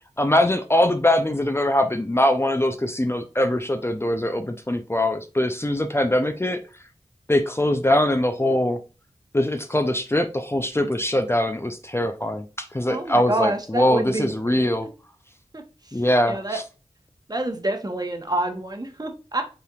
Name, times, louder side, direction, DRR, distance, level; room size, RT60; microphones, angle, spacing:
voice 1, 0.2-6.6 7.3-8.8 9.3-14.9 15.9-16.6, left 1 dB, 20° left, 8 dB, 0.5 m, -22 dB
voice 2, 12.9-14.9 15.5-15.6 16.3-16.6 17.3-19.4, right 2 dB, 30° right, 4 dB, 1.1 m, -27 dB
5.5 x 3.3 x 2.4 m, 0.33 s
wide cardioid pair, 45°, 13 cm